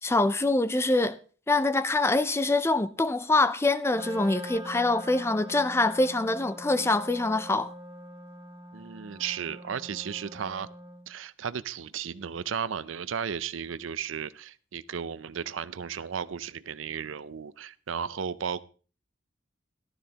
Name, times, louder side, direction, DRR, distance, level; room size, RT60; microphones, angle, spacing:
voice 1, 0.0-1.2 1.5-7.7, left 2 dB, 15° left, 0.5 m, -25 dB
Wind instrument woodwind instrument, 3.9-11.1, equal, 25° right, 2.0 m, -43 dB
voice 2, 8.7-10.7 11.1-18.6, right 7 dB, 85° right, 0.5 m, -34 dB
14.5 x 12.0 x 2.9 m
head